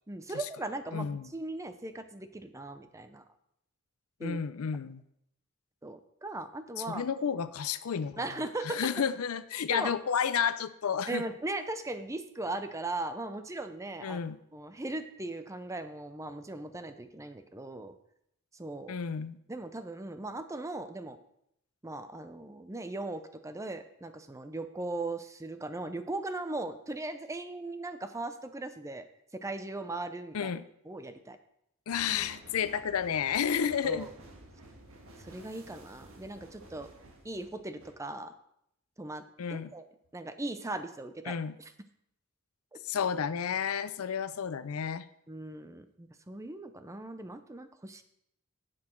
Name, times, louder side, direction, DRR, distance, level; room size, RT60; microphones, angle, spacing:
voice 1, 0.1-3.2 4.2-4.4 5.8-7.0 8.2-8.9 9.7-9.9 11.1-14.2 14.5-18.0 18.6-19.0 19.5-21.2 21.8-29.1 29.3-30.5 30.9-31.4 33.8-34.1 35.2-36.9 37.2-38.3 39.0-39.2 39.5-39.8 40.1-41.7 45.3-48.0, right 2 dB, 15° right, 9 dB, 0.6 m, -38 dB
voice 2, 0.9-1.3 4.2-5.0 6.9-8.3 8.6-11.2 14.0-14.4 18.9-19.4 30.3-30.6 31.9-34.1 39.4-39.7 41.3-41.5 42.8-45.0, left 7 dB, 80° left, 14 dB, 0.5 m, -31 dB
sound 1, 31.9-37.9, right 1 dB, 70° right, 1.7 m, -53 dB
10.0 x 7.8 x 4.4 m, 0.77 s
head